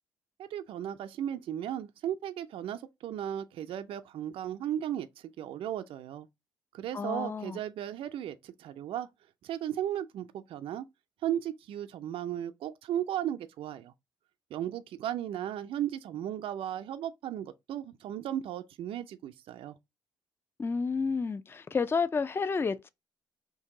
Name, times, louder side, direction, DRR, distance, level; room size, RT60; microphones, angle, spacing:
voice 1, 0.4-6.3 6.7-9.1 9.4-10.9 11.2-13.9 14.5-19.7, right 11 dB, 65° right, 0.4 m, -35 dB
voice 2, 6.9-7.6 20.6-22.9, left 5 dB, 25° left, 0.3 m, -30 dB
2.8 x 2.6 x 3.7 m
hypercardioid pair, 55°, 10 cm